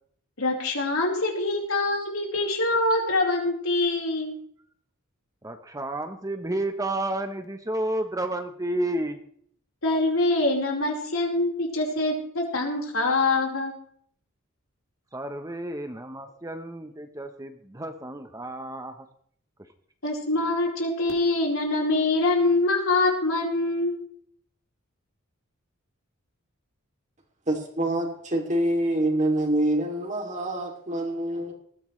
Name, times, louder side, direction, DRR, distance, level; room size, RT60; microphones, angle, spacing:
voice 1, 0.4-4.3 9.8-13.7 20.0-23.9, left 2 dB, 75° left, -1 dB, 4.4 m, -24 dB
voice 2, 5.4-9.2 15.1-18.9, right 1 dB, 15° right, 6 dB, 1.0 m, -31 dB
voice 3, 27.5-31.5, right 1 dB, 35° right, 3 dB, 2.9 m, -26 dB
19.5 x 15.0 x 3.3 m, 0.62 s
head